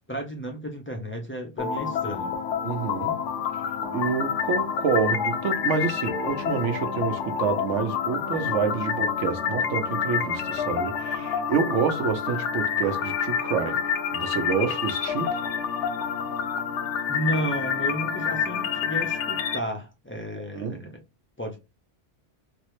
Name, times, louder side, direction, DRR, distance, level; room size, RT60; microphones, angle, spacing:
voice 1, 0.1-2.3 17.1-21.0 21.4-21.6, right 1 dB, 15° left, 0.4 m, -32 dB
sound 1, 1.6-19.6, left 7 dB, 80° left, 0.9 m, -28 dB
voice 2, 2.6-3.2 3.9-13.8 14.1-15.5 20.5-20.9, right 6 dB, 85° right, 1.0 m, -28 dB
3.5 x 2.0 x 3.0 m
omnidirectional pair, 1.2 m